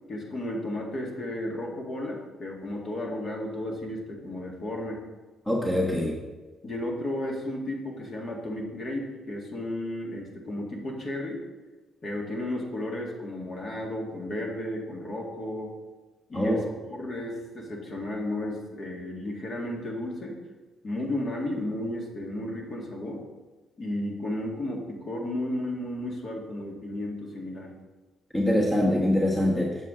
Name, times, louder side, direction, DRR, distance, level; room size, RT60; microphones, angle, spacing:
voice 1, 0.0-5.0 6.6-11.4 12.0-15.7 16.3-20.4 20.8-23.2 23.8-27.7, left 1 dB, 45° left, -1 dB, 1.9 m, -33 dB
voice 2, 5.5-6.1 16.3-16.6 28.3-29.8, left 1 dB, 15° left, -2 dB, 1.3 m, -24 dB
7.8 x 7.3 x 3.8 m, 1.3 s
cardioid pair, 90°, 0 cm